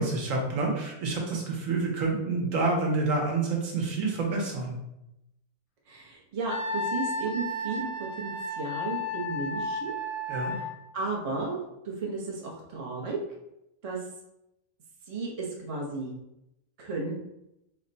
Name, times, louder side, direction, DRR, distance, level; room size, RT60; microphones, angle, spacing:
voice 1, 0.0-4.8 10.3-10.5, right 3 dB, 70° right, 0 dB, 1.2 m, -28 dB
voice 2, 5.9-7.9 8.2-9.9 10.5-10.7 10.9-13.2 13.8-14.0 15.1-16.1 16.8-17.2, right 3 dB, 40° right, -2 dB, 0.5 m, -34 dB
Wind instrument woodwind instrument, 6.5-10.7, left 1 dB, 90° left, 1.1 m, -33 dB
3.3 x 2.1 x 3.9 m, 0.85 s
omnidirectional pair, 1.5 m